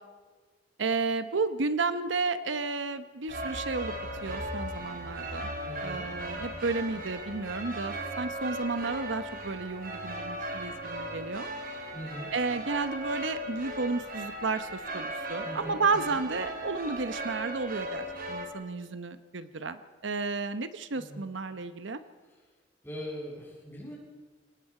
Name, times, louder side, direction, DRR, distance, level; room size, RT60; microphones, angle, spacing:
voice 1, 0.8-3.9 4.2-5.5 5.8-11.5 12.3-22.0, right 4 dB, 80° right, 11 dB, 0.9 m, -32 dB
sound 1, 3.3-18.5, right 1 dB, 50° right, 3.5 m, -37 dB
voice 2, 5.6-6.1 11.9-12.3 15.4-15.8 16.1-16.2 20.9-21.2 22.8-23.9, equal, 10° left, -4 dB, 7.1 m, -41 dB
29.5 x 18.5 x 4.9 m, 1.4 s
head